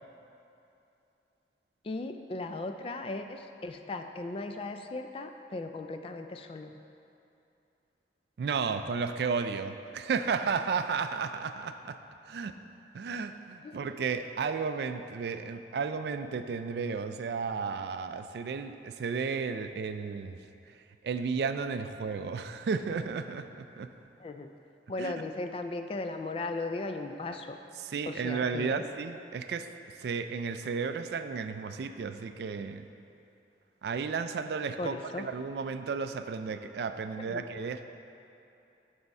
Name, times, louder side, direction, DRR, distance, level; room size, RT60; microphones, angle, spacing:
voice 1, 1.8-6.7 13.6-13.8 24.2-24.5 24.9-27.6 28.1-28.8 34.8-35.3 37.2-37.4, left 2 dB, 30° left, 6 dB, 0.3 m, -37 dB
voice 2, 8.4-12.0 12.3-12.5 12.9-20.4 20.7-20.8 21.0-23.9 25.0-25.1 27.8-29.7 30.0-32.8 33.8-37.9, right 5 dB, 65° right, 9 dB, 0.3 m, -33 dB
9.3 x 3.5 x 5.4 m, 2.8 s
head